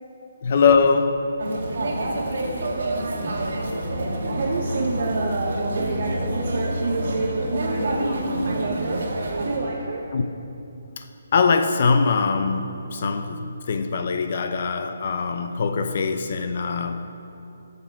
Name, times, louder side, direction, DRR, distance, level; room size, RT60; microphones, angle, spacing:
voice 1, 0.4-1.3 10.1-10.2 11.0-11.1 11.3-17.1, left 5 dB, 35° left, 7 dB, 0.6 m, -22 dB
sound 1, 1.4-9.6, right 1 dB, 55° right, 1.8 m, -27 dB
voice 2, 4.3-8.2 8.4-10.1, right 3 dB, 40° right, -1 dB, 0.9 m, -29 dB
16.5 x 6.8 x 4.5 m, 2.8 s
hypercardioid pair, 175°, 0 cm